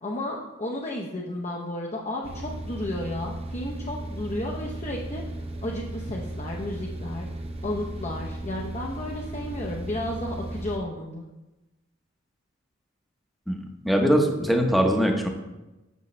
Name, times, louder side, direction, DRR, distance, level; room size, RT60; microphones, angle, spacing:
voice 1, 0.0-5.2 5.6-7.3 7.6-11.3, left 1 dB, 35° left, 0 dB, 0.7 m, -33 dB
sound 1, 2.2-10.8, right 1 dB, 30° right, 0.7 m, -36 dB
voice 2, 13.8-15.3, equal, ahead, 2 dB, 0.9 m, -21 dB
8.2 x 6.4 x 3.2 m, 1.0 s
head